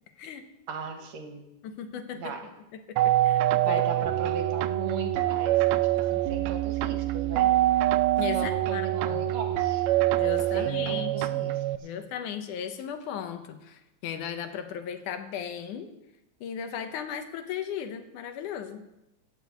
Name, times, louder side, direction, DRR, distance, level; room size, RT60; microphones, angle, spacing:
voice 1, 0.7-1.4 2.1-2.5 3.6-7.5 8.3-9.9 10.5-11.9, right 4 dB, 65° right, 5 dB, 2.2 m, -37 dB
voice 2, 1.6-2.3 2.9-3.8 8.2-9.2 10.2-11.5 11.8-15.9 16.4-18.8, left 8 dB, 80° left, 8 dB, 2.4 m, -36 dB
sound 1, 3.0-11.8, right 14 dB, 80° right, 1.6 m, -25 dB
15.5 x 6.3 x 8.3 m, 0.91 s
omnidirectional pair, 3.6 m